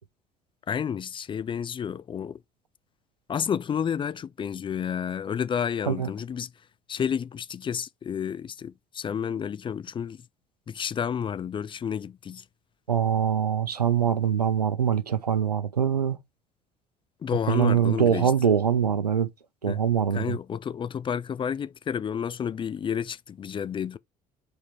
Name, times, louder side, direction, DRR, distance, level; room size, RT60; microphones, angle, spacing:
voice 1, 0.7-2.4 3.3-6.5 6.9-10.2 10.7-12.4 17.2-18.3 19.7-19.8 20.1-24.0, left 8 dB, 25° left, 0.4 m, -30 dB
voice 2, 12.9-16.2 17.5-19.3 19.6-20.4, right 8 dB, 90° right, 0.5 m, -23 dB
7.1 x 4.3 x 3.2 m
figure-of-eight pair, 55°, 20 cm